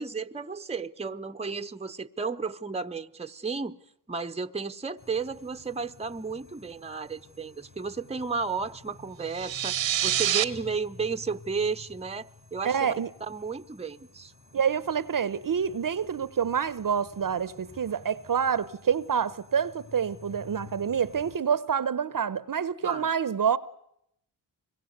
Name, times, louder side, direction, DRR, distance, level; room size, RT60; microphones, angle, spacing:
voice 1, 0.0-3.8 4.1-9.8 10.0-12.9 13.3-14.3 22.8-23.1, right 5 dB, 15° right, 0.9 m, -33 dB
sound 1, 5.0-21.4, left 3 dB, 40° left, 5.4 m, -51 dB
sound 2, 9.3-10.5, right 11 dB, 85° right, 1.2 m, -26 dB
voice 2, 12.6-13.1 14.5-23.6, right 7 dB, 45° right, 0.9 m, -27 dB
25.0 x 22.0 x 8.0 m
cardioid pair, 60°, 45 cm